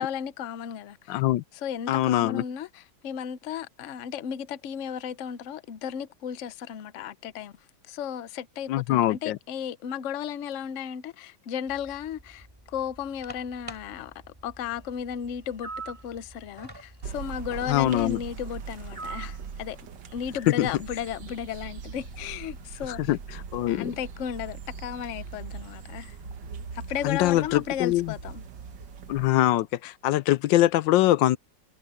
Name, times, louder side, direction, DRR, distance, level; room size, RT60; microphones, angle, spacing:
voice 1, 0.0-1.2 1.5-7.5 7.9-14.1 14.4-19.8 20.1-23.2 23.7-26.2 26.7-28.4, left 8 dB, 55° left, 0.9 m, -34 dB
voice 2, 1.1-1.4 1.9-2.4 8.7-9.4 17.7-18.2 20.6-20.7 23.1-23.2 23.5-23.9 27.0-28.1 29.1-31.4, left 14 dB, 85° left, 1.3 m, -23 dB
sound 1, 11.7-28.9, equal, 10° right, 5.1 m, -51 dB
sound 2, 15.6-16.0 19.0-19.4, right 4 dB, 40° right, 5.4 m, -37 dB
sound 3, 17.0-29.3, right 6 dB, 75° right, 2.0 m, -41 dB
omnidirectional pair, 2.0 m